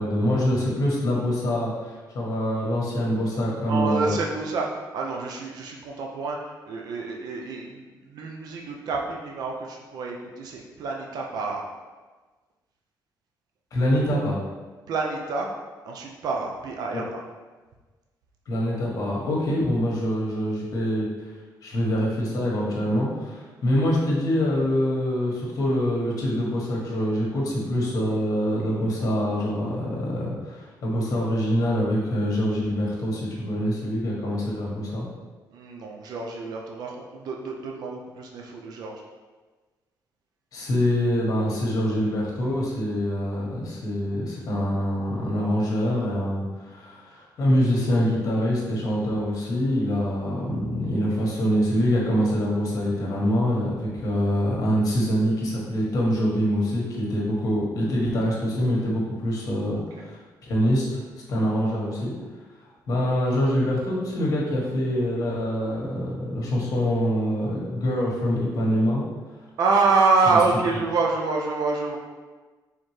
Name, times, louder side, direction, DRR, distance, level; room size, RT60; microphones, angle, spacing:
voice 1, 0.0-4.2 13.7-14.4 16.9-17.0 18.5-21.1 21.6-35.0 40.5-61.0 61.3-62.1 62.6-69.0, equal, 55° left, -3 dB, 1.3 m, -25 dB
voice 2, 3.7-4.7 4.9-6.4 6.7-11.6 14.9-15.5 15.9-17.2 35.5-39.0 59.7-60.1 69.6-72.0, right 4 dB, 65° right, 0 dB, 0.6 m, -27 dB
4.4 x 3.6 x 3.2 m, 1.3 s
cardioid pair, 145°, 7 cm